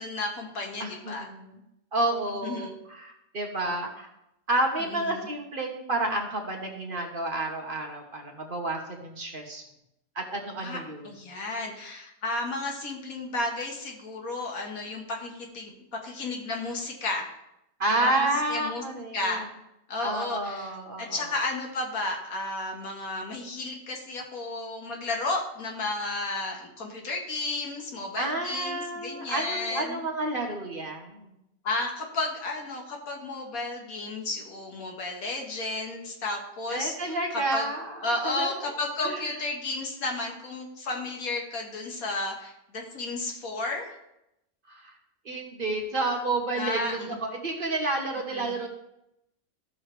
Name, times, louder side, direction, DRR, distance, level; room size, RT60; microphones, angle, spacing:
voice 1, 0.0-1.2 2.4-2.7 4.9-5.3 10.6-17.3 17.9-18.8 19.1-19.5 19.9-30.0 31.6-37.7 38.0-44.0 46.6-47.2 48.3-48.6, left 2 dB, 80° left, 1 dB, 1.9 m, -33 dB
voice 2, 0.8-1.6 1.9-4.1 4.5-9.6 10.1-11.1 17.8-19.5 20.0-21.3 28.2-31.3 36.7-38.7 39.0-39.3 44.7-44.9 45.2-48.7, right 2 dB, 40° right, 1 dB, 1.2 m, -30 dB
13.5 x 6.4 x 3.2 m, 0.85 s
omnidirectional pair, 1.5 m